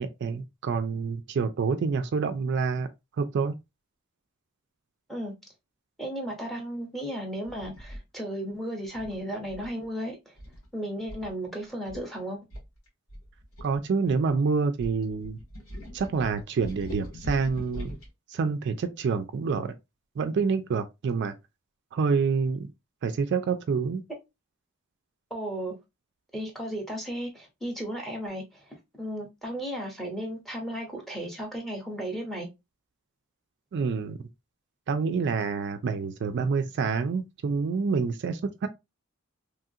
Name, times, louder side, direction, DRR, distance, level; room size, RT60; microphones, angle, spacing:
voice 1, 0.0-2.9 3.2-3.5 13.6-15.4 15.9-17.9 18.3-19.7 20.2-21.3 21.9-22.7 23.0-24.0 33.7-34.2 34.9-38.7, right 5 dB, 55° right, 0.4 m, -27 dB
voice 2, 6.0-10.3 10.7-12.4 25.3-25.8 26.3-28.6 29.0-32.5, equal, ahead, 0.8 m, -34 dB
sound 1, 7.4-8.0 9.0-9.8 10.4-10.7 11.1-11.3 11.6-11.7 11.9-12.1 12.5-14.3 14.8-18.1, equal, 75° left, 1.4 m, -41 dB
3.0 x 2.4 x 2.6 m
head